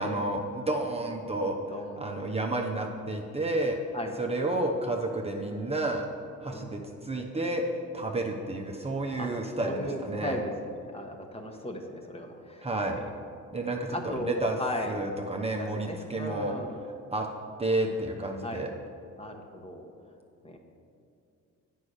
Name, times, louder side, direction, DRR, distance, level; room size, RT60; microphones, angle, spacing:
voice 1, 0.0-3.8 4.2-6.1 6.4-10.4 12.6-13.0 13.5-14.6 14.9-16.5 17.1-17.3 17.6-18.7, right 2 dB, 20° right, 1 dB, 0.8 m, -31 dB
voice 2, 1.7-2.4 3.9-4.1 6.5-6.8 9.2-9.3 9.6-12.6 13.9-15.0 15.6-16.8 18.4-18.7 19.2-19.9 20.4-20.6, left 1 dB, 20° left, 2 dB, 1.2 m, -37 dB
8.4 x 5.5 x 6.4 m, 2.4 s
cardioid pair, 90°, 30 cm